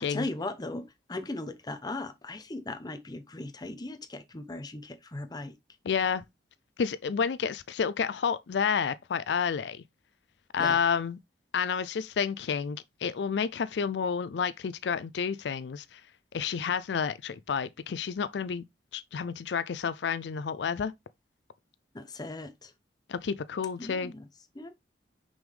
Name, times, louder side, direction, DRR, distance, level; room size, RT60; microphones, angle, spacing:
voice 1, 0.0-5.6 10.6-10.8 21.9-22.7 23.8-24.3 24.5-24.8, left 2 dB, 25° left, 0.8 m, -38 dB
voice 2, 5.9-6.2 6.8-9.8 10.5-11.2 11.5-16.0 16.3-18.6 18.9-20.9 23.1-24.1, left 6 dB, 75° left, 0.4 m, -30 dB
6.0 x 5.4 x 3.4 m
head